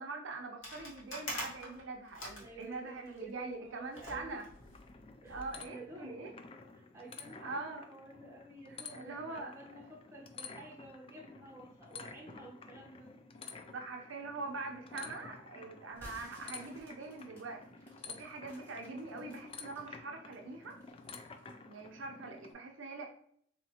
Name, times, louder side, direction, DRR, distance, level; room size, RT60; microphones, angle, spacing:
voice 1, 0.0-4.4 5.3-6.3 7.4-7.9 8.9-9.5 13.7-20.8 21.7-23.1, right 3 dB, 65° right, 2 dB, 0.6 m, -43 dB
sound 1, 0.6-3.2 3.9-5.6, equal, 80° left, 1.3 m, -45 dB
voice 2, 2.4-4.4 5.2-6.3 6.7-13.1, right 2 dB, 15° right, -2 dB, 0.7 m, -51 dB
sound 2, 4.1-22.5, left 4 dB, 30° left, 0.3 m, -51 dB
sound 3, 15.9-19.9 20.3-21.6, equal, 10° left, 1.5 m, -57 dB
4.3 x 2.8 x 2.8 m, 0.65 s
head